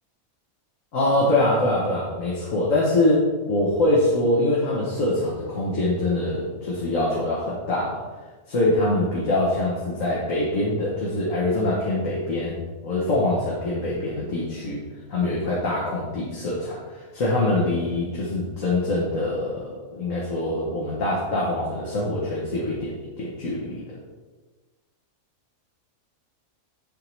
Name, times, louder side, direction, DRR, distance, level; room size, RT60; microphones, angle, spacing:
voice 1, 0.9-8.0 8.5-14.8 15.1-24.0, left 1 dB, 70° left, -5 dB, 1.8 m, -24 dB
11.0 x 3.7 x 4.7 m, 1.3 s
omnidirectional pair, 1.5 m